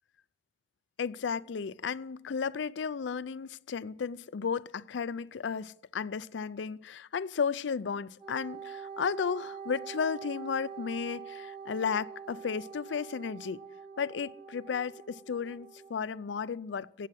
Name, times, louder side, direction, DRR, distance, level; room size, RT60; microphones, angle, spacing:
voice 1, 1.0-13.6 14.0-17.1, left 6 dB, 80° left, 0.4 m, -34 dB
Wind instrument woodwind instrument, 8.2-15.9, right 6 dB, 30° right, 1.2 m, -45 dB
17.0 x 7.4 x 7.7 m
head